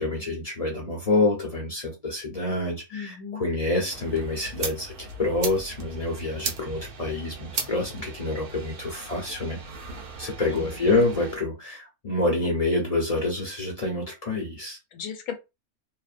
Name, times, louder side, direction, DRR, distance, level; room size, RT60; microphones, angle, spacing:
voice 1, 0.0-4.9 5.2-9.6 10.2-14.8, left 2 dB, 40° left, 0.6 m, -27 dB
voice 2, 2.9-3.4 10.5-11.0 14.9-15.3, left 7 dB, 80° left, 1.1 m, -36 dB
sound 1, 3.9-11.4, right 4 dB, 80° right, 1.2 m, -37 dB
2.7 x 2.1 x 2.4 m
omnidirectional pair, 1.6 m